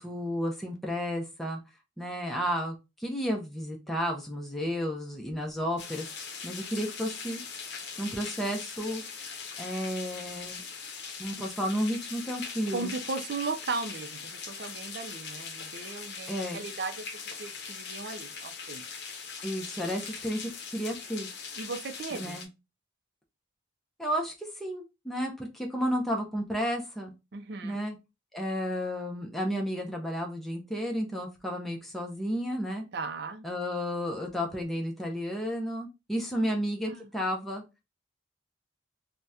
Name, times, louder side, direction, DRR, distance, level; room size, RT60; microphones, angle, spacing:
voice 1, 0.0-1.6 2.0-6.1 6.4-7.4 8.0-9.0 9.6-10.6 11.2-12.9 16.3-16.6 19.4-21.3 22.1-22.5 24.0-27.1 27.6-28.0 28.3-32.8 33.4-37.6, equal, ahead, 0.5 m, -32 dB
sound 1, 5.8-22.5, left 5 dB, 60° left, 0.6 m, -41 dB
voice 2, 12.7-17.1 17.4-18.8 21.6-22.4 27.3-27.8 32.9-33.5 36.3-36.5 36.9-37.1, right 4 dB, 60° right, 0.4 m, -36 dB
2.8 x 2.1 x 3.5 m
head